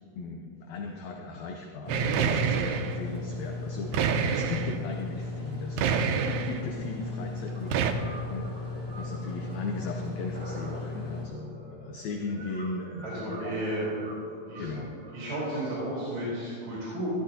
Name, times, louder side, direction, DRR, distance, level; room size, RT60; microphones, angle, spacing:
voice 1, 0.2-6.0 6.3-13.5 14.6-14.9, left 3 dB, 75° left, 2 dB, 1.7 m, -37 dB
sound 1, 1.8-11.3, left 3 dB, 35° left, 1.0 m, -37 dB
sound 2, 1.9-3.0 3.9-4.8 5.8-6.6 7.7-7.9, right 7 dB, 80° right, 1.8 m, -27 dB
sound 3, 7.5-15.8, right 1 dB, 20° right, 1.7 m, -46 dB
voice 2, 13.0-14.1 14.5-14.8 15.1-17.1, right 1 dB, 50° right, -9 dB, 4.4 m, -33 dB
14.0 x 12.5 x 2.8 m, 2.4 s
omnidirectional pair, 3.9 m